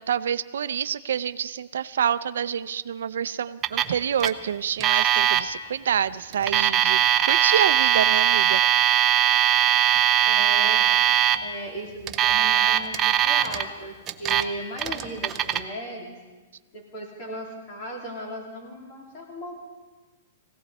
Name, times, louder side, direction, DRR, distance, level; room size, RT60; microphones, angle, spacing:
voice 1, 0.0-8.6, right 8 dB, 80° right, 14 dB, 0.5 m, -27 dB
Alarm, 3.6-3.9 4.2-4.3 4.8-5.4 6.3-11.4 12.1-13.6 14.1-14.4 14.8-15.6, right 10 dB, 15° right, 0.5 m, -20 dB
voice 2, 10.2-10.8 11.4-16.1 16.7-19.6, equal, 30° left, -1 dB, 3.3 m, -36 dB
21.0 x 16.5 x 4.2 m, 1.3 s
hypercardioid pair, 175°, 0 cm